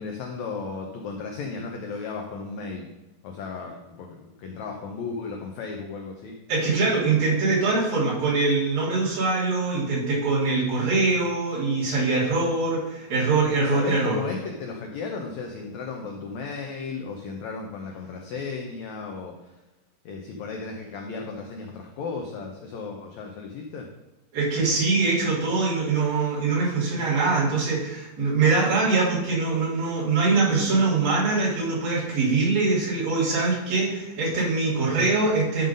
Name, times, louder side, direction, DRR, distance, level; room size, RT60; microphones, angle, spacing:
voice 1, 0.0-2.9 3.2-6.3 13.6-19.3 20.0-23.9, left 4 dB, 85° left, 2 dB, 1.6 m, -35 dB
voice 2, 6.5-14.2 24.3-35.7, right 3 dB, 70° right, -8 dB, 4.8 m, -23 dB
11.0 x 3.8 x 5.3 m, 1.1 s
omnidirectional pair, 4.3 m